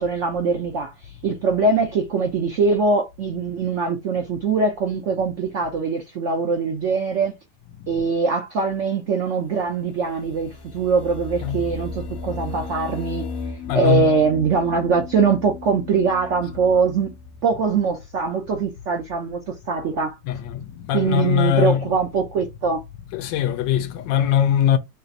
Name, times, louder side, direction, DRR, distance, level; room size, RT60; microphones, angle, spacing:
voice 1, 0.0-7.3 7.9-13.2 13.7-17.1 17.4-20.2 20.9-22.8, right 4 dB, 75° right, 0.7 m, -22 dB
sound 1, 3.2-3.5 3.7-4.1 4.4-4.7 5.0-5.3 5.7-5.9 6.3-6.5 9.7-17.4, left 4 dB, 60° left, 0.7 m, -36 dB
voice 2, 13.7-14.1 20.3-22.0 23.1-24.8, left 10 dB, 75° left, 1.2 m, -21 dB
3.3 x 2.4 x 3.9 m
omnidirectional pair, 2.0 m